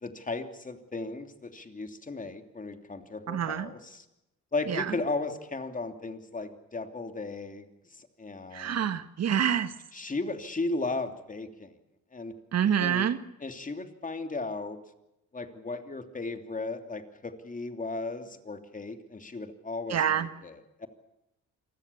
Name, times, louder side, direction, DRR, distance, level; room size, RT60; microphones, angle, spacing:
voice 1, 0.0-4.0 4.5-7.6 8.0-8.9 9.9-11.7 12.1-12.4 12.8-13.1 13.4-14.8 15.3-20.9, left 3 dB, 25° left, 7 dB, 3.0 m, -36 dB
voice 2, 3.3-3.7 4.7-4.9 8.5-9.7 12.5-13.2 19.9-20.3, right 9 dB, 60° right, 11 dB, 1.6 m, -27 dB
27.5 x 20.0 x 7.1 m, 0.90 s
cardioid pair, 90°, 30 cm